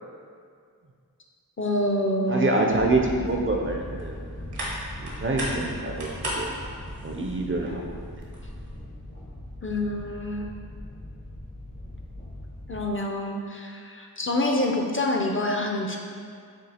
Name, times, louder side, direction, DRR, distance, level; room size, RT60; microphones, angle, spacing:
voice 1, 1.6-2.5 9.6-10.5 12.7-16.0, left 1 dB, 35° left, 1 dB, 0.4 m, -26 dB
voice 2, 2.3-4.2 5.0-6.6 7.0-8.0, right 2 dB, 35° right, 1 dB, 0.4 m, -26 dB
sound 1, 2.7-12.9, left 1 dB, 60° left, 0.9 m, -40 dB
sound 2, 3.6-8.8, right 1 dB, 85° right, 1.0 m, -37 dB
7.1 x 2.4 x 2.8 m, 2.2 s
wide cardioid pair, 70°, 38 cm